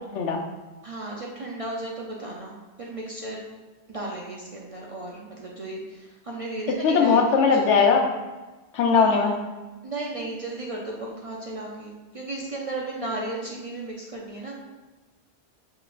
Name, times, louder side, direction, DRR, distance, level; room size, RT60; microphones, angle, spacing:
voice 1, 0.1-0.4 6.8-8.1 8.7-9.4, left 5 dB, 90° left, 3 dB, 1.0 m, -19 dB
voice 2, 0.8-3.4 3.9-7.2 8.9-9.2 9.8-14.6, right 2 dB, 45° right, -3 dB, 0.5 m, -34 dB
6.9 x 3.1 x 2.4 m, 1.2 s
omnidirectional pair, 1.2 m